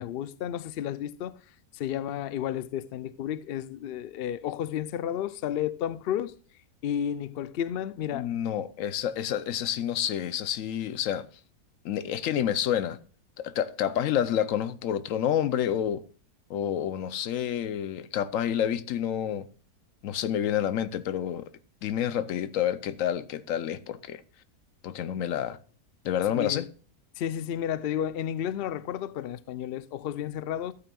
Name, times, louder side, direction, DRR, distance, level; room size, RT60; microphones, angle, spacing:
voice 1, 0.0-1.4 1.7-6.4 6.8-8.3 26.3-26.7 27.2-30.7, left 10 dB, 90° left, 0.5 m, -32 dB
voice 2, 8.1-11.3 11.8-13.0 13.4-16.0 16.5-19.5 20.0-21.5 21.8-24.2 24.8-25.6 26.0-26.7, left 10 dB, 65° left, 0.9 m, -29 dB
14.0 x 8.9 x 2.3 m
omnidirectional pair, 1.6 m